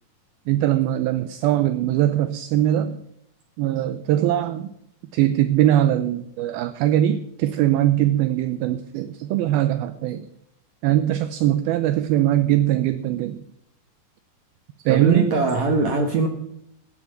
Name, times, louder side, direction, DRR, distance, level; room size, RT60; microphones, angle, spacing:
voice 1, 0.5-3.0 3.6-4.7 5.1-10.3 10.8-13.4 14.9-15.3, right 12 dB, 80° right, 11 dB, 2.2 m, -21 dB
voice 2, 14.9-16.3, right 4 dB, 65° right, 4 dB, 1.9 m, -21 dB
14.5 x 9.9 x 7.7 m, 0.75 s
omnidirectional pair, 5.0 m